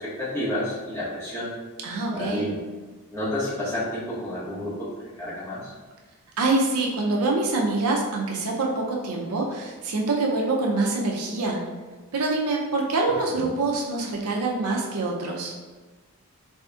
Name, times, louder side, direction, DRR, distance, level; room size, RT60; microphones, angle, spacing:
voice 1, 0.0-1.5 2.1-2.6 3.1-4.9 5.2-5.7 13.5-13.6, left 1 dB, 10° left, -11 dB, 1.4 m, -30 dB
voice 2, 1.8-2.5 6.4-11.6 12.1-15.5, right 2 dB, 70° right, -1 dB, 0.5 m, -25 dB
4.1 x 2.7 x 2.3 m, 1.3 s
head